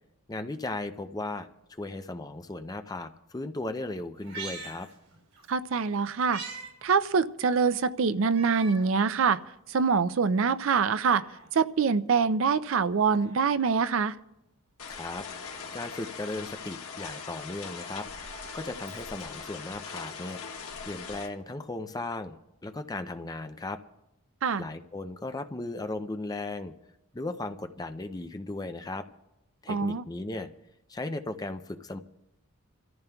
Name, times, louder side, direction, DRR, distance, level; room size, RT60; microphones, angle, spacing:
voice 1, 0.3-4.9 14.9-15.3 15.7-18.1 18.5-23.8 24.6-26.7 27.1-29.0 29.6-30.5 30.9-32.0, left 2 dB, 15° left, 8 dB, 0.5 m, -36 dB
Meow, 4.2-5.5 5.8-6.7 7.1-7.2 8.2-8.9 9.4-9.5 10.5-11.5 13.0-14.0 15.4-16.2 17.7-19.4 20.6-20.7, right 4 dB, 85° right, 5.9 m, -45 dB
voice 2, 5.5-6.4 6.8-9.4 9.7-11.2 11.5-14.2 24.4-24.6 29.7-30.0, right 5 dB, 60° right, 14 dB, 0.4 m, -25 dB
sound 1, 14.8-21.3, left 5 dB, 85° left, 1.6 m, -41 dB
28.5 x 14.0 x 2.3 m, 0.89 s
head